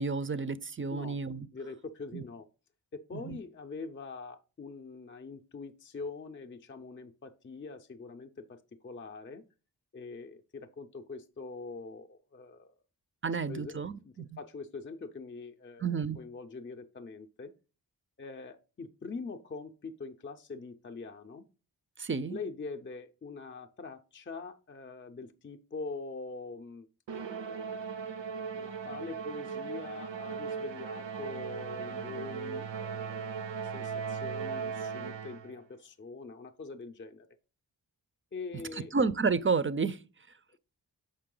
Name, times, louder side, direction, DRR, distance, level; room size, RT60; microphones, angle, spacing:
voice 1, 0.0-1.5 2.1-2.2 3.1-3.4 13.2-14.4 15.8-16.2 22.0-22.4 38.9-40.0, right 4 dB, 30° right, 0.4 m, -31 dB
voice 2, 1.5-2.5 2.9-9.4 9.9-12.7 13.3-13.8 14.0-17.5 18.2-21.5 22.3-26.9 27.4-37.3 38.3-38.9, left 4 dB, 30° left, 0.5 m, -44 dB
Musical instrument, 27.1-35.6, right 6 dB, 85° right, 0.6 m, -38 dB
6.7 x 5.3 x 3.7 m
wide cardioid pair, 85°, 42 cm